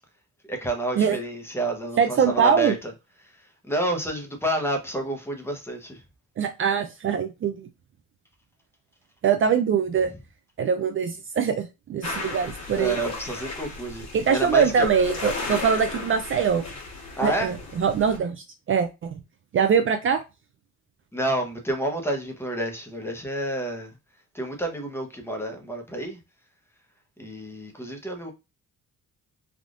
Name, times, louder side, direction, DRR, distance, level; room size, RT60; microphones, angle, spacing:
voice 1, 0.5-2.9 3.2-6.0 10.1-10.2 12.1-12.4 12.7-14.9 17.2-17.5 21.1-23.9 24.3-26.2 27.2-28.3, right 1 dB, 10° left, 0.8 m, -29 dB
voice 2, 2.0-2.7 6.4-7.7 9.2-10.1 10.6-13.0 14.1-16.6 17.2-19.2 19.5-20.2, right 7 dB, 45° right, 0.5 m, -23 dB
sound 1, 12.0-18.2, left 3 dB, 60° left, 1.3 m, -35 dB
3.5 x 2.4 x 2.4 m
cardioid pair, 90°, 30 cm